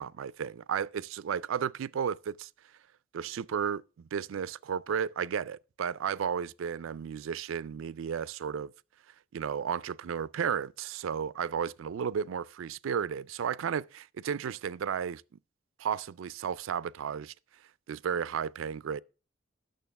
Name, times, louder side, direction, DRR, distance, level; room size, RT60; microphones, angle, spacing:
voice 1, 0.0-2.5 3.1-8.7 9.3-15.2 15.8-17.3 17.9-19.0, right 7 dB, 90° right, 0.4 m, -33 dB
9.2 x 6.8 x 5.8 m
head